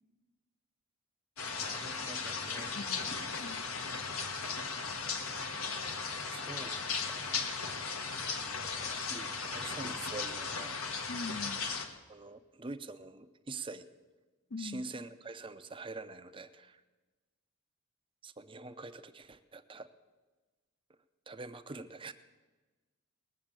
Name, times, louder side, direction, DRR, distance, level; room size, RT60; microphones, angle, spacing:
sound 1, 1.4-11.9, left 5 dB, 70° left, 1.4 m, -37 dB
voice 1, 1.6-2.7 6.3-6.7 7.1-7.3 8.6-10.8 12.1-13.9 14.6-16.8 18.2-19.9 21.3-22.1, right 3 dB, 25° right, 11 dB, 0.6 m, -45 dB
voice 2, 3.3-3.9 11.1-11.7 14.5-14.9, left 3 dB, 50° left, 13 dB, 0.5 m, -42 dB
19.5 x 7.1 x 8.9 m, 1.3 s
head